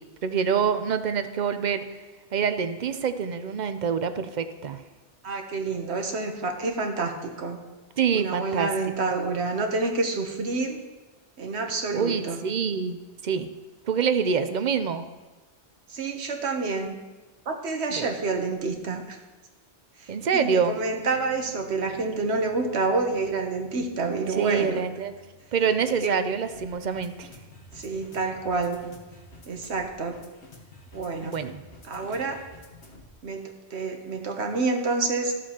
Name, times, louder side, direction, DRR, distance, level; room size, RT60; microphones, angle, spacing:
voice 1, 0.2-1.9 2.3-4.8 8.0-8.7 10.4-10.5 11.9-13.0 13.2-13.5 13.9-15.1 17.9-18.1 20.1-20.8 24.4-25.1 25.5-27.3 31.2-31.5, right 6 dB, 50° right, 10 dB, 0.6 m, -26 dB
voice 2, 5.2-7.6 8.1-10.8 11.4-12.4 15.9-17.0 17.5-19.2 20.0-24.8 25.8-26.2 27.7-28.9 29.5-30.2 30.9-31.4 31.9-32.4 33.2-35.3, right 3 dB, 75° right, 4 dB, 1.2 m, -28 dB
sound 1, 20.2-33.2, left 1 dB, 70° left, 1.6 m, -50 dB
14.0 x 7.5 x 2.9 m, 1.2 s
omnidirectional pair, 1.1 m